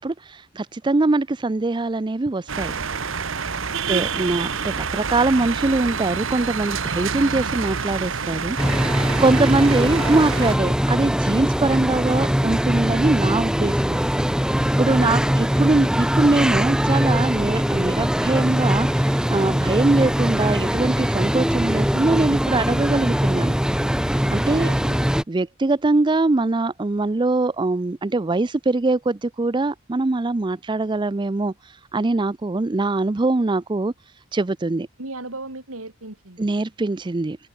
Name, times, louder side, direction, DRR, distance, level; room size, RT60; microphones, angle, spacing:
voice 1, 0.0-2.7 3.9-8.6 8.9-14.0 14.8-23.6 24.1-24.7 25.3-33.9 34.3-34.9 36.4-37.4, right 2 dB, 20° right, 0.4 m, -22 dB
sound 1, 2.5-10.6, right 5 dB, 65° right, 1.4 m, -27 dB
voice 2, 3.5-3.9 15.0-15.4 24.5-25.0 35.0-36.4, right 2 dB, 85° right, 4.3 m, -37 dB
sound 2, 8.6-25.2, equal, 5° right, 1.4 m, -21 dB
head